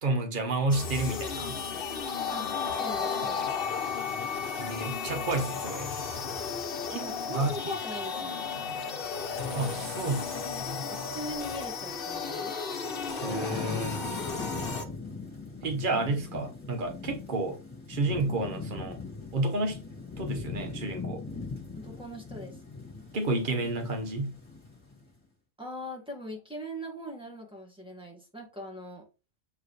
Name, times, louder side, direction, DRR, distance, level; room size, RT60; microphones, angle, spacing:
voice 1, 0.0-1.6 4.6-5.9 6.9-7.5 9.5-10.5 13.1-14.0 15.6-17.6 17.9-19.0 19.3-19.8 20.2-21.2 23.1-24.4, right 2 dB, 50° right, 1.3 m, -30 dB
sound 1, 0.7-14.9, left 5 dB, 55° left, 1.1 m, -34 dB
voice 2, 2.3-3.5 6.9-8.5 10.8-12.5 21.8-22.6 25.6-29.1, equal, 5° right, 1.9 m, -41 dB
Thunderstorm / Rain, 12.8-25.1, left 4 dB, 25° left, 2.3 m, -40 dB
7.6 x 4.6 x 3.2 m
omnidirectional pair, 1.1 m